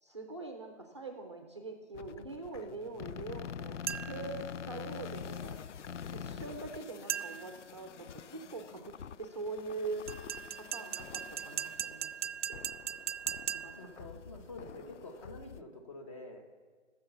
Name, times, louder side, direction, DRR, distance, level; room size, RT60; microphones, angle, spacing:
voice 1, 0.0-5.6 6.1-10.0 10.5-12.1 12.5-12.6 13.5-14.1, right 3 dB, 25° right, 4 dB, 0.6 m, -43 dB
sound 1, 1.9-15.6, left 7 dB, 85° left, 0.5 m, -46 dB
sound 2, 3.9-4.3 7.1-7.6 10.1-13.9, right 9 dB, 80° right, 0.5 m, -38 dB
voice 2, 13.7-16.4, left 2 dB, 30° left, 3 dB, 1.3 m, -48 dB
16.0 x 6.9 x 7.0 m, 1.5 s
hypercardioid pair, 175°, 35 cm